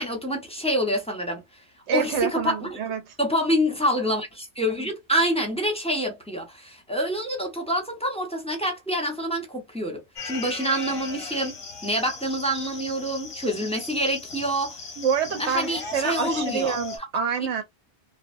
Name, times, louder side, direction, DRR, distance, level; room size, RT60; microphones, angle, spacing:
voice 1, 0.0-1.4 1.9-2.8 3.2-11.5 11.8-14.8 15.4-16.8, equal, 5° left, 0.8 m, -26 dB
voice 2, 1.9-3.2 15.0-17.6, right 7 dB, 80° right, 1.0 m, -27 dB
sound 1, 10.2-17.0, left 5 dB, 35° left, 0.6 m, -37 dB
3.3 x 2.0 x 2.5 m
omnidirectional pair, 1.1 m